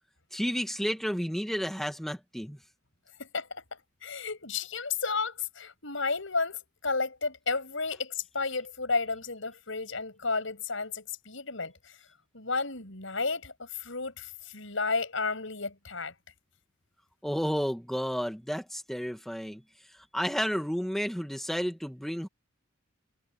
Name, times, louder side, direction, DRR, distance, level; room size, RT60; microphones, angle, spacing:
voice 1, 0.3-2.6 17.2-19.6 19.9-22.3, equal, ahead, 1.8 m, -31 dB
voice 2, 3.2-3.6 4.0-12.0 12.3-16.1, left 4 dB, 70° left, 6.9 m, -32 dB
head